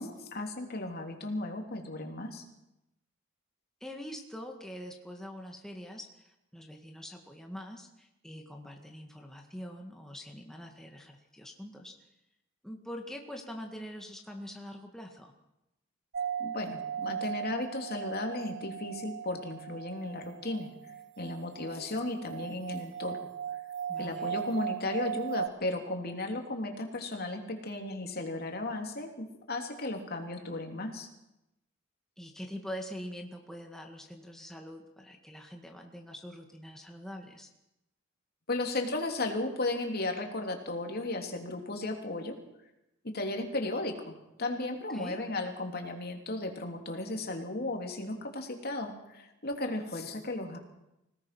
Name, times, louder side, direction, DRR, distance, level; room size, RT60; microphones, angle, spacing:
voice 1, 0.0-2.4 16.4-23.2 24.0-31.1 38.5-42.3 43.0-50.6, left 2 dB, 50° left, 3 dB, 3.2 m, -35 dB
voice 2, 3.8-11.9 12.6-15.3 23.9-24.3 32.2-37.5 44.9-45.2, equal, ahead, 2 dB, 1.8 m, -44 dB
sound 1, 16.1-25.5, right 8 dB, 55° right, 0.8 m, -38 dB
26.5 x 18.5 x 6.1 m, 0.90 s
head